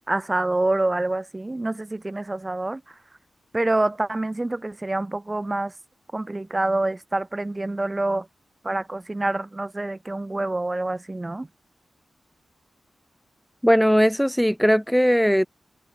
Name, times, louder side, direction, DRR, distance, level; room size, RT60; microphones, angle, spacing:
voice 1, 0.1-2.8 3.5-5.7 6.1-8.3 8.6-11.5, right 2 dB, 20° right, 5.9 m, -26 dB
voice 2, 13.6-15.5, equal, ahead, 3.7 m, -19 dB
wide cardioid pair, 95°, 0 cm